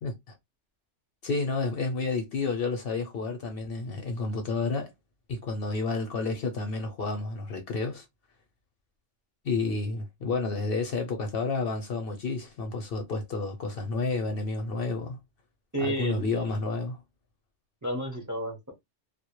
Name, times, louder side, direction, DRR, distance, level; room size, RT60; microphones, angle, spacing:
voice 1, 0.0-0.3 1.2-4.9 5.3-8.1 9.4-15.2 15.8-17.0, left 3 dB, 60° left, 0.7 m, -30 dB
voice 2, 15.7-16.4 17.8-18.7, right 1 dB, 20° right, 0.6 m, -31 dB
2.1 x 2.1 x 2.8 m
omnidirectional pair, 1.2 m